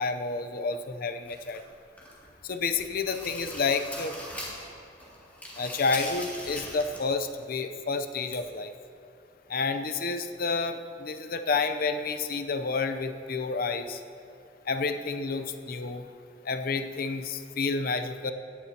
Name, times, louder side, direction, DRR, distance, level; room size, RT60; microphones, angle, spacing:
voice 1, 0.0-1.6 2.4-4.2 5.6-8.7 9.5-14.0 14.7-16.1 16.5-18.3, left 4 dB, 55° left, 9 dB, 0.6 m, -30 dB
sound 1, 1.2-2.3 2.7-4.7 5.0-7.1 7.4-7.5 8.3-8.4, left 1 dB, 10° left, 2.7 m, -40 dB
17.5 x 11.5 x 2.9 m, 2.6 s
head